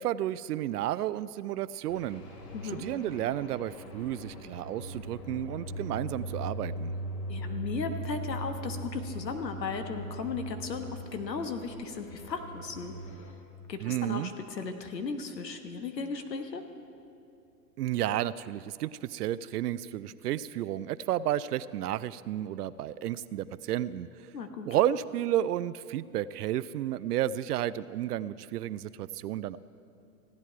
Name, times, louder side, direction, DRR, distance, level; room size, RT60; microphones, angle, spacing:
voice 1, 0.0-2.2 2.6-6.9 13.8-14.3 17.8-24.1 24.6-29.6, right 12 dB, 70° right, 17 dB, 0.5 m, -32 dB
sound 1, 1.9-13.3, right 1 dB, 40° left, 1.6 m, -40 dB
voice 2, 7.3-12.9 13.7-16.6 24.3-24.7, left 5 dB, 90° left, 7 dB, 1.2 m, -36 dB
15.5 x 9.6 x 4.7 m, 2.6 s
hypercardioid pair, 120°, 49 cm